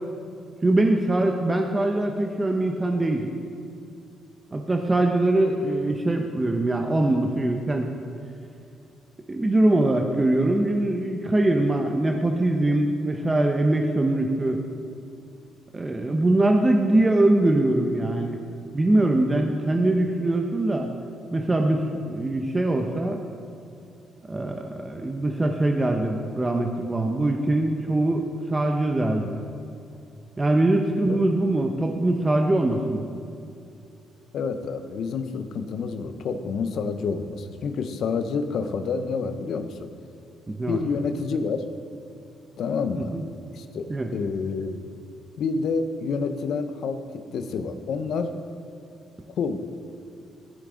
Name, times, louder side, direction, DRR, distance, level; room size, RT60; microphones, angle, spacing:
voice 1, 0.6-3.3 4.5-7.9 9.3-14.6 15.7-18.4 18.7-20.9 21.3-23.2 24.3-28.2 28.5-29.4 30.4-33.1 40.5-40.8 43.0-43.2 43.9-44.1, right 1 dB, 20° right, 3 dB, 0.7 m, -22 dB
voice 2, 34.3-39.9 40.7-41.6 42.6-43.2 43.5-43.9 44.1-44.8 45.4-47.0 47.3-48.3 49.4-49.6, left 5 dB, 70° left, 9 dB, 0.7 m, -28 dB
14.0 x 6.3 x 3.8 m, 2.6 s
cardioid pair, 90°, 0 cm